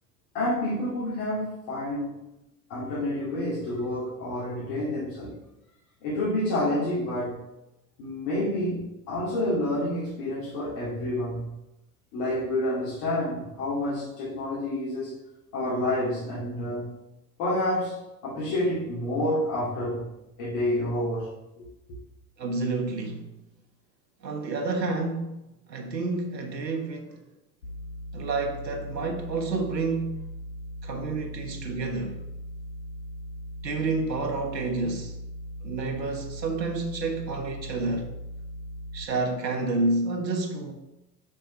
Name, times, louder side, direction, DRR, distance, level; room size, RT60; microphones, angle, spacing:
voice 1, 0.3-2.1 2.7-5.4 6.0-7.4 8.0-11.6 12.1-15.1 15.5-16.9 17.4-20.1 20.4-21.3 21.6-21.7, left 1 dB, 50° left, 2.2 m, -29 dB
voice 2, 22.4-23.3 24.2-25.4 25.7-27.2 28.1-30.3 30.8-32.2 33.6-35.1 35.6-38.1 38.9-40.7, right 3 dB, 90° right, 0.9 m, -29 dB
sound 1, 27.6-39.1, equal, 85° left, 1.1 m, -39 dB
5.3 x 4.4 x 4.3 m
figure-of-eight pair, 75°, 49 cm